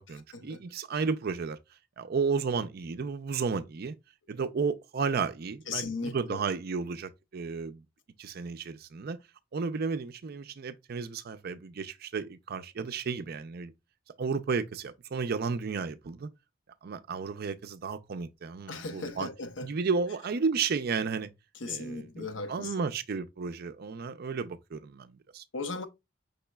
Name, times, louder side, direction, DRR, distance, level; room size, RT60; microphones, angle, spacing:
voice 1, 0.0-1.6 2.0-3.9 4.3-7.8 8.2-9.2 9.5-13.7 14.2-16.3 16.8-19.3 19.6-21.3 21.7-25.4, right 5 dB, 55° right, 0.4 m, -33 dB
voice 2, 5.7-6.4 18.7-19.7 21.5-22.8 25.5-25.9, left 3 dB, 70° left, 0.7 m, -37 dB
5.4 x 4.0 x 2.2 m
head